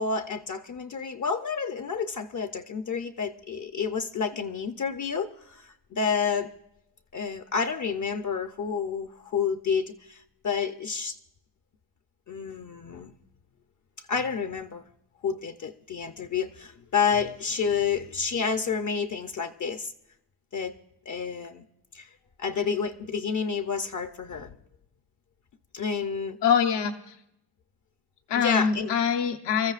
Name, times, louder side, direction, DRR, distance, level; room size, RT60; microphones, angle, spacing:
voice 1, 0.0-6.5 7.1-11.2 12.3-13.1 14.1-14.8 15.2-19.9 20.5-20.7 21.1-21.6 21.9-22.1 22.4-24.5 25.7-26.4 28.4-28.9, left 6 dB, 45° left, 7 dB, 0.6 m, -29 dB
voice 2, 26.4-26.9 28.3-29.7, left 7 dB, 80° left, 6 dB, 0.9 m, -24 dB
26.5 x 14.0 x 2.4 m, 0.81 s
wide cardioid pair, 140°, 41 cm